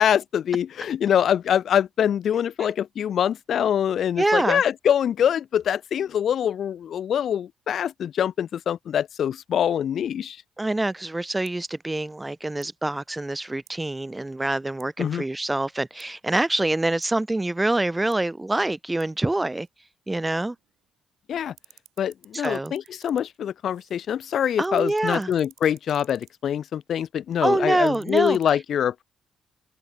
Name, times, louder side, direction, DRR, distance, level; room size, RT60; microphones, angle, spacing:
voice 1, 0.0-10.4 15.0-15.2 21.3-21.5 22.0-29.0, left 9 dB, 65° left, 0.8 m, -24 dB
voice 2, 4.2-4.6 10.6-19.7 20.1-20.6 22.3-22.7 24.6-25.3 27.4-28.6, right 2 dB, 15° right, 2.0 m, -25 dB
sound 1, 11.5-11.6 12.5-12.8 13.7-13.8 14.8-14.9 16.0-16.1 17.0-17.2 18.1-18.2 19.0-19.1 19.6-19.7 20.5-21.2 21.4-24.1 24.4-26.4 27.7-28.5, right 14 dB, 85° right, 7.7 m, -55 dB
open air
cardioid pair, 90°, 0 cm